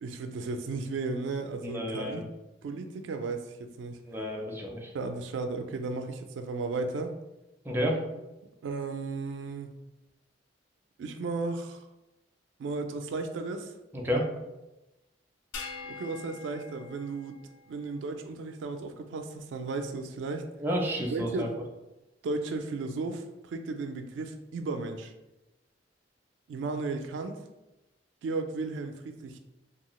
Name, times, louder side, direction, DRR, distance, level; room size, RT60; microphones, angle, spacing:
voice 1, 0.0-2.3 2.6-4.0 4.9-7.1 8.6-9.8 11.0-11.9 12.6-13.7 15.9-17.4 17.7-20.5 21.1-21.5 22.2-25.1 26.5-27.4 28.2-29.4, right 3 dB, 90° right, 6 dB, 0.3 m, -34 dB
voice 2, 1.7-2.2 4.1-4.9 7.7-8.0 13.9-14.3 20.6-21.5, equal, 10° right, -1 dB, 0.4 m, -30 dB
sound 1, 15.5-18.1, left 4 dB, 85° left, 0.4 m, -44 dB
2.7 x 2.3 x 3.0 m, 0.99 s
head